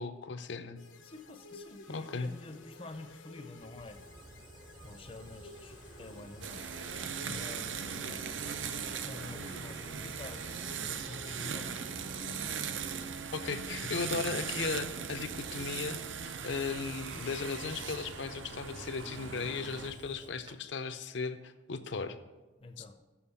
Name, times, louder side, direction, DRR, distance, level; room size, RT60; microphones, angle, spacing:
voice 1, 0.0-0.8 1.9-2.3 13.3-22.2 22.8-23.0, left 4 dB, 75° left, 10 dB, 0.6 m, -37 dB
sound 1, 0.8-12.6, left 2 dB, 90° left, 1.1 m, -54 dB
voice 2, 1.0-4.1 4.4-4.6 4.8-6.6 6.9-11.7 22.6-23.0, left 2 dB, 30° left, 7 dB, 0.5 m, -48 dB
Fire, 3.6-20.6, right 1 dB, 25° right, 0.5 m, -53 dB
sound 2, 6.4-19.9, right 6 dB, 80° right, 0.6 m, -39 dB
7.2 x 6.6 x 7.0 m, 1.2 s
head